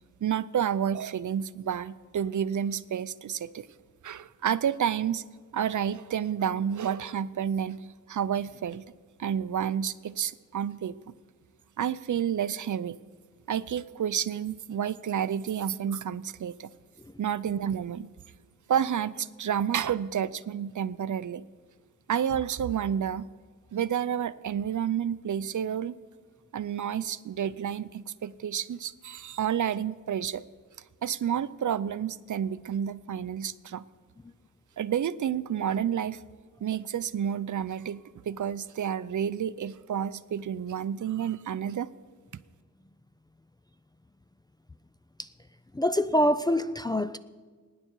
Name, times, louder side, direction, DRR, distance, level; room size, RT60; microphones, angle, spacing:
voice 1, 0.2-3.7 4.0-5.2 5.5-7.8 8.1-8.9 9.2-11.0 11.8-13.0 13.5-16.7 17.2-18.1 18.7-21.5 22.1-23.3 23.7-26.0 26.5-30.4 31.0-33.8 34.8-36.2 36.6-41.9, right 9 dB, 65° right, 0.5 m, -30 dB
voice 2, 45.8-47.2, equal, 15° left, 0.3 m, -25 dB
23.0 x 10.0 x 4.6 m
wide cardioid pair, 130°, 32 cm